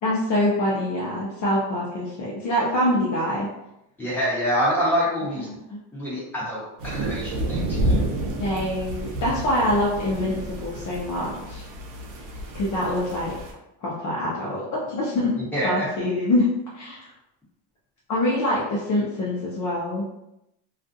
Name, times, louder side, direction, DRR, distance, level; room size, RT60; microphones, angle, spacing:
voice 1, 0.0-3.5 5.5-5.8 8.4-11.6 12.5-13.4 13.8-15.3 15.6-16.5 16.7-17.1 18.1-20.0, left 1 dB, 40° left, -5 dB, 0.6 m, -25 dB
voice 2, 4.0-5.5 5.9-8.0 15.4-15.9, equal, 5° left, -8 dB, 1.2 m, -26 dB
sound 1, 6.8-13.5, right 1 dB, 75° right, 0.7 m, -29 dB
2.4 x 2.3 x 2.6 m, 0.87 s
cardioid pair, 115°, 46 cm